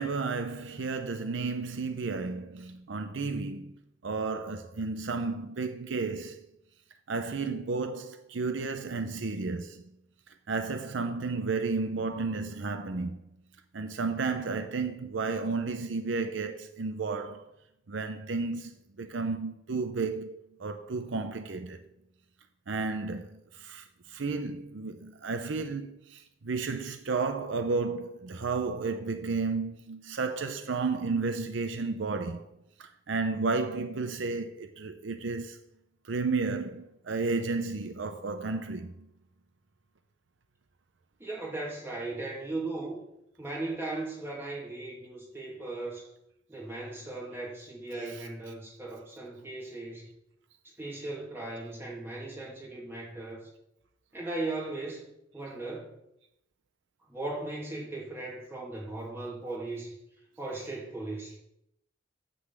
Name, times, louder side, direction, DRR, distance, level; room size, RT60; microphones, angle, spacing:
voice 1, 0.0-3.7 4.0-6.4 7.1-9.8 10.5-13.2 13.7-17.5 17.9-18.7 19.0-20.3 20.6-21.8 22.7-23.3 23.6-32.4 32.8-35.6 36.1-38.9, right 4 dB, 75° right, 0.6 m, -32 dB
voice 2, 41.2-43.0 43.4-46.1 46.5-50.1 50.8-53.5 54.1-55.0 55.3-55.9 57.1-59.9 60.4-61.4, right 2 dB, 15° right, 2.5 m, -37 dB
9.7 x 4.0 x 7.3 m
head